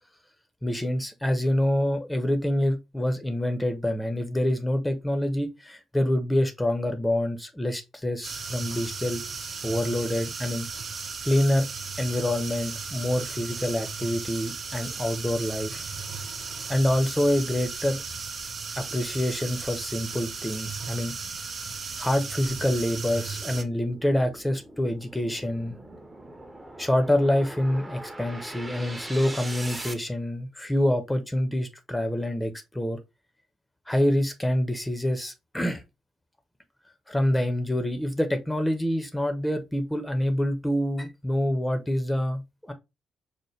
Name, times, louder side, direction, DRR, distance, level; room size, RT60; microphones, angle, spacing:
voice 1, 0.6-9.2 9.6-10.7 11.2-11.7 12.0-15.9 16.7-18.0 18.7-21.1 22.0-25.8 26.8-33.0 33.9-35.8 37.1-42.7, left 1 dB, 10° left, 0.7 m, -26 dB
sound 1, 8.2-23.6, right 5 dB, 50° right, 0.5 m, -36 dB
sound 2, 17.1-29.9, right 1 dB, 20° right, 0.8 m, -43 dB
4.9 x 2.1 x 3.0 m
hypercardioid pair, 45°, 0 cm